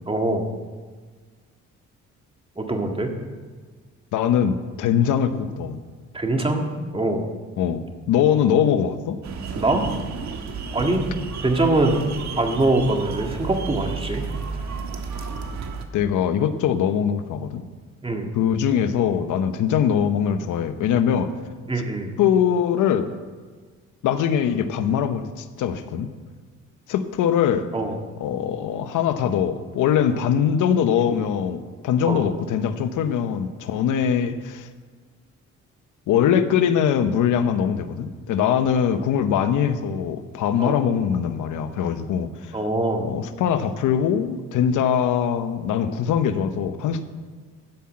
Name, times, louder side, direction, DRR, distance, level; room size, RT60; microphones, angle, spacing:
voice 1, 0.1-0.4 2.6-3.1 6.1-6.7 6.9-7.3 9.6-9.9 10.7-11.0 11.4-12.0 12.4-14.3 18.0-18.3 21.7-22.1 27.7-28.0 32.1-32.2 40.6-40.8 42.5-43.1, right 2 dB, 20° right, 3 dB, 1.8 m, -23 dB
voice 2, 4.1-5.8 7.6-9.2 15.9-17.6 18.3-21.3 21.8-21.9 22.2-23.1 24.0-26.1 26.9-27.7 28.2-34.7 36.1-42.6 43.0-47.0, left 8 dB, 85° left, 10 dB, 0.9 m, -22 dB
sound 1, 9.2-15.8, right 5 dB, 65° right, 1.4 m, -32 dB
13.0 x 5.7 x 8.5 m, 1.5 s
cardioid pair, 90°, 30 cm